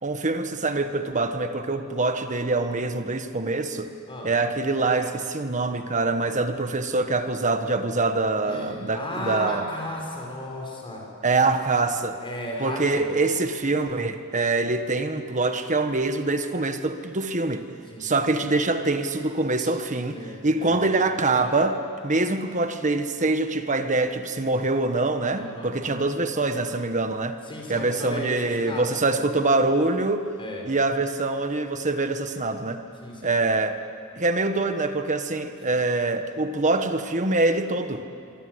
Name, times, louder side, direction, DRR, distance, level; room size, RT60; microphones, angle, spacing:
voice 1, 0.0-3.9 4.2-9.7 11.2-12.2 12.6-17.7 18.0-21.8 22.0-27.4 27.7-30.3 30.6-32.8 33.2-33.8 34.2-38.0, right 3 dB, 35° right, 8 dB, 1.5 m, -24 dB
voice 2, 8.4-11.1 12.2-13.2 17.9-18.5 19.6-19.7 20.1-20.8 21.3-21.5 25.4-26.1 27.5-29.0 30.4-30.7 33.0-33.5 35.6-35.8, left 1 dB, 25° left, 0 dB, 5.9 m, -35 dB
26.0 x 24.0 x 8.1 m, 2.5 s
head